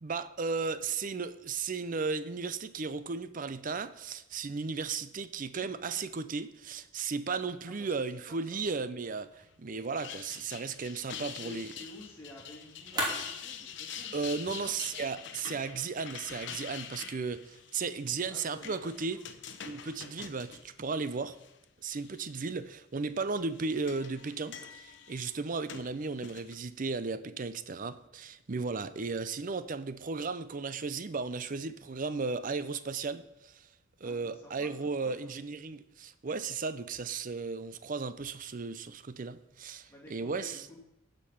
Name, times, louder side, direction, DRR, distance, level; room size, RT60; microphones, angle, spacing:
voice 1, 0.0-11.7 14.1-19.2 19.6-21.4 21.8-33.7 34.0-40.6, right 4 dB, 40° right, 13 dB, 0.5 m, -35 dB
voice 2, 7.6-8.0 8.3-8.6 9.4-9.5 11.1-14.2 14.4-14.7 18.2-19.3 34.0-35.3 39.8-40.8, left 1 dB, 10° left, -3 dB, 2.7 m, -51 dB
sound 1, 9.7-21.5 21.9-22.5 23.3-26.6, left 8 dB, 60° left, 0.9 m, -45 dB
sound 2, 10.6-16.5, equal, 20° right, 2.9 m, -42 dB
15.0 x 5.3 x 5.8 m, 0.90 s
head